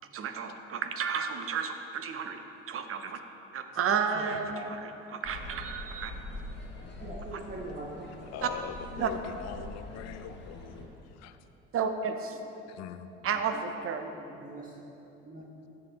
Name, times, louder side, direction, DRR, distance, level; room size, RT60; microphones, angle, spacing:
voice 1, 0.1-2.4 2.7-3.1 3.5-6.1 7.3-7.4 8.4-8.5 9.0-9.1 11.7-12.4 13.2-14.1, right 6 dB, 50° right, 7 dB, 0.9 m, -32 dB
sound 1, 5.2-10.8, left 1 dB, 35° left, 2.1 m, -44 dB
voice 2, 7.0-8.1 14.1-14.7 15.2-15.4, right 2 dB, 30° right, -4 dB, 1.6 m, -42 dB
voice 3, 8.3-11.4 12.7-13.1, left 9 dB, 65° left, 11 dB, 0.7 m, -42 dB
14.0 x 8.0 x 3.8 m, 3.0 s
supercardioid pair, 75°, 29 cm